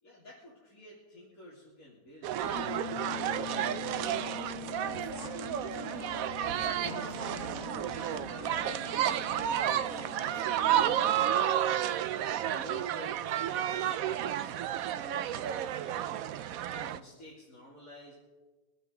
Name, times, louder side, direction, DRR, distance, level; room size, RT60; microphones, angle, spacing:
voice 1, 0.0-4.2 12.2-16.2 16.7-18.2, left 1 dB, 55° left, -7 dB, 3.4 m, -51 dB
sound 1, 2.2-17.0, right 11 dB, 70° right, 0.9 m, -31 dB
sound 2, 2.4-11.7, left 19 dB, 90° left, 1.2 m, -45 dB
voice 2, 4.7-11.7, left 1 dB, 15° right, -2 dB, 1.7 m, -47 dB
Acoustic guitar / Strum, 6.8-10.9, left 4 dB, 40° left, 0.7 m, -51 dB
24.5 x 9.0 x 3.8 m, 1.2 s
omnidirectional pair, 1.8 m